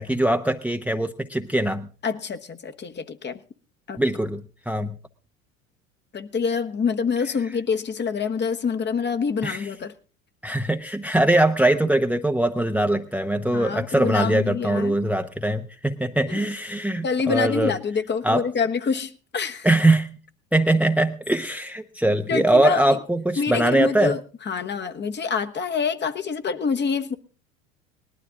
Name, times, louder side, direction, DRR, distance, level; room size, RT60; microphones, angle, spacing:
voice 1, 0.0-1.9 4.0-5.0 9.4-9.7 10.4-17.7 18.2-18.4 19.6-20.2 20.5-24.1, right 1 dB, 5° right, 0.8 m, -22 dB
voice 2, 2.0-3.4 3.9-4.0 6.1-9.9 13.5-15.0 16.3-16.5 17.0-19.7 22.3-23.0 23.4-24.2 24.5-27.2, left 5 dB, 25° left, 1.2 m, -26 dB
19.5 x 12.5 x 3.7 m
hypercardioid pair, 75°, 39 cm